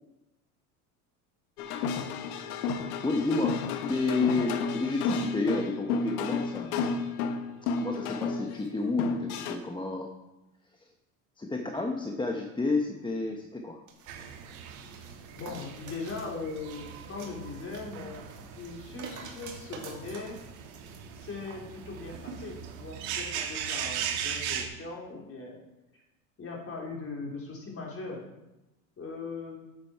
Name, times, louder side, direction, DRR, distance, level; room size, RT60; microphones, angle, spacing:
sound 1, 1.6-9.6, left 5 dB, 85° left, 1.1 m, -32 dB
voice 1, 3.0-6.8 7.8-10.1 11.4-13.8, left 3 dB, 10° left, 2 dB, 1.1 m, -30 dB
sound 2, 13.9-21.0 21.4-21.6, right 5 dB, 45° right, 2.6 m, -48 dB
sound 3, 14.1-24.7, right 8 dB, 75° right, 1.6 m, -39 dB
voice 2, 15.4-18.3 18.5-20.4 21.1-25.6 25.9-26.0 26.4-28.2 29.0-29.6, left 3 dB, 30° left, -2 dB, 3.9 m, -39 dB
10.0 x 7.8 x 4.7 m, 0.96 s
supercardioid pair, 90°, 43 cm